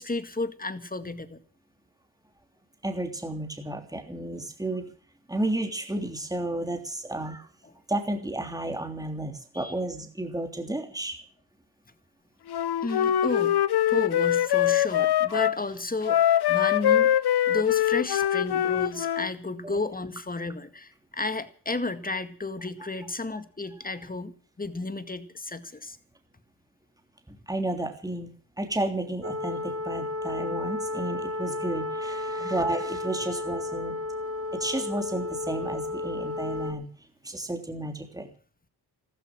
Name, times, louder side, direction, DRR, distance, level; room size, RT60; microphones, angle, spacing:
voice 1, 0.0-1.4 7.6-7.7 9.5-9.7 12.8-13.6 13.9-16.2 16.5-17.1 17.5-26.0 32.4-32.5, left 3 dB, 20° left, 11 dB, 2.0 m, -32 dB
voice 2, 2.8-4.9 5.3-7.5 7.9-11.2 15.3-15.4 19.6-19.8 27.3-28.3 28.6-33.9 34.5-36.9 37.2-38.3, right 1 dB, 10° right, 4 dB, 3.3 m, -32 dB
Wind instrument woodwind instrument, 12.5-15.6 16.0-19.3, left 11 dB, 55° left, 0.8 m, -23 dB
sound 1, 29.2-36.7, left 2 dB, 30° right, 2.8 m, -33 dB
14.0 x 13.5 x 7.5 m, 0.43 s
cardioid pair, 75°, 46 cm